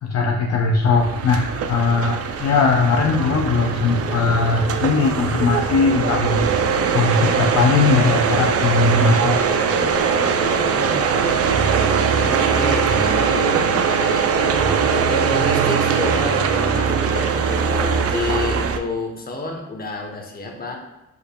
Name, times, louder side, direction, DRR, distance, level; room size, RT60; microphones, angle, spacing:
voice 1, 0.0-6.4 6.9-9.4, left 4 dB, 50° left, 1 dB, 0.5 m, -19 dB
sound 1, 0.8-18.8, right 6 dB, 50° right, 0.4 m, -21 dB
sound 2, 3.2-18.5, left 1 dB, 10° right, 1.3 m, -35 dB
voice 2, 10.7-11.6 12.2-17.4 17.8-20.8, left 2 dB, 30° left, 2 dB, 0.9 m, -30 dB
5.0 x 4.8 x 2.2 m, 0.99 s
cardioid pair, 100°, 32 cm